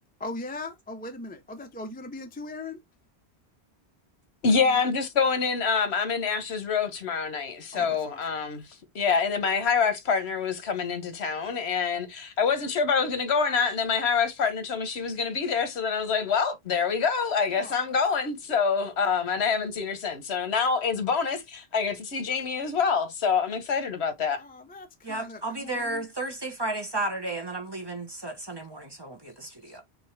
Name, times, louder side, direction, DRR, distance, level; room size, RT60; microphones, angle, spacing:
voice 1, 0.2-2.8 4.6-4.8 7.7-8.2 17.5-18.0 24.4-26.0, left 2 dB, 10° left, 0.4 m, -39 dB
voice 2, 4.4-8.7 8.9-24.4, left 5 dB, 80° left, 1.3 m, -26 dB
voice 3, 25.0-29.8, right 2 dB, 25° right, 1.1 m, -33 dB
5.4 x 2.8 x 3.2 m
omnidirectional pair, 1.1 m